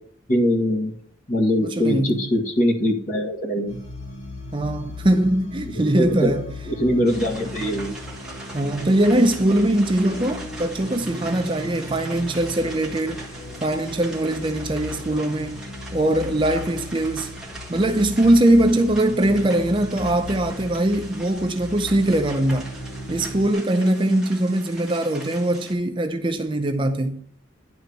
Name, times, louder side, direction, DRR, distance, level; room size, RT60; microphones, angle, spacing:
voice 1, 0.3-0.9 1.3-3.8 5.7-6.3 6.7-8.0, equal, 40° left, 1.9 m, -22 dB
voice 2, 1.6-2.2 4.5-6.5 8.5-13.3 13.6-15.6 15.9-17.3 17.7-22.7 23.1-27.3, right 1 dB, 25° right, 0.6 m, -21 dB
sound 1, 3.7-23.5, left 2 dB, 85° left, 3.4 m, -37 dB
sound 2, 7.1-25.7, right 2 dB, 5° right, 1.6 m, -41 dB
11.0 x 4.0 x 6.7 m
head